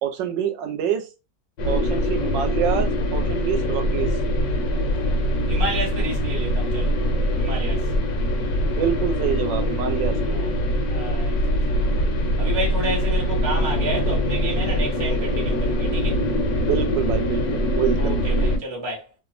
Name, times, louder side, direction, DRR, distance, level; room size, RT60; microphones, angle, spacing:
voice 1, 0.0-1.1 1.7-4.1 8.6-10.5 12.8-13.0 16.7-18.3, right 9 dB, 85° right, 1.3 m, -27 dB
sound 1, 1.6-18.6, equal, 70° left, 1.0 m, -23 dB
voice 2, 5.5-7.0 7.4-7.9 10.9-12.1 12.4-16.2 18.0-19.1, right 1 dB, 40° right, 0.3 m, -31 dB
3.1 x 2.1 x 2.4 m
omnidirectional pair, 1.9 m